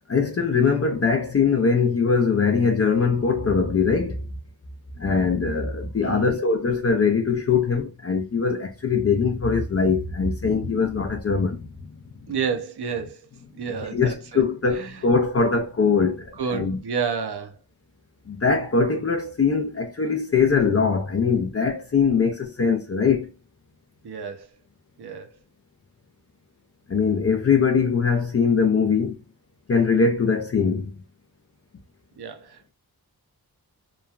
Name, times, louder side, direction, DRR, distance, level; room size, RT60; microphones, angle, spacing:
voice 1, 0.1-4.3 5.0-11.7 13.8-16.8 18.3-23.3 26.9-29.2 29.7-30.9, left 5 dB, 40° left, 0.4 m, -22 dB
voice 2, 6.0-6.4 12.3-13.3 13.5-14.4 14.7-15.0 16.4-17.6 24.0-24.5 25.0-25.4 32.2-32.7, right 6 dB, 85° right, 0.7 m, -30 dB
3.0 x 2.2 x 2.3 m
wide cardioid pair, 110°, 38 cm